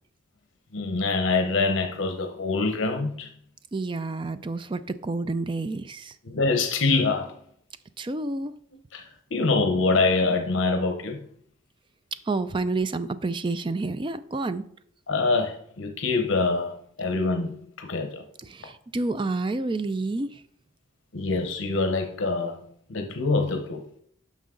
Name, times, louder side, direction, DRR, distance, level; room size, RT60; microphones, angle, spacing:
voice 1, 0.7-3.3 6.2-7.3 8.9-9.0 9.3-11.2 15.1-16.7 17.0-18.2 21.1-22.6 22.9-23.8, left 3 dB, 75° left, 0.9 m, -25 dB
voice 2, 3.7-6.2 8.0-8.5 12.3-14.7 18.4-20.4, right 3 dB, 25° right, 0.4 m, -29 dB
9.5 x 6.1 x 3.8 m
head